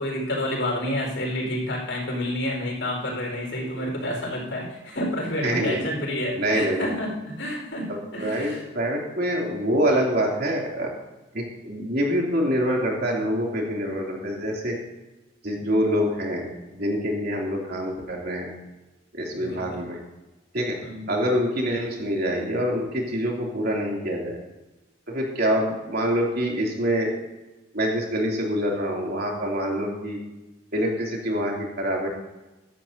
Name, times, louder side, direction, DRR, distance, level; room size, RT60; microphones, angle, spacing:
voice 1, 0.0-8.6 19.4-19.8 20.8-21.1, left 1 dB, 90° left, -1 dB, 4.8 m, -29 dB
voice 2, 5.4-5.8 6.3-6.9 8.1-10.9 11.3-14.8 15.4-16.5 16.7-18.5 19.1-20.0 20.5-20.8 21.1-24.4 25.1-27.1 27.7-30.2 30.7-32.1, equal, 60° right, -2 dB, 3.0 m, -25 dB
15.0 x 12.5 x 2.8 m, 1.1 s
head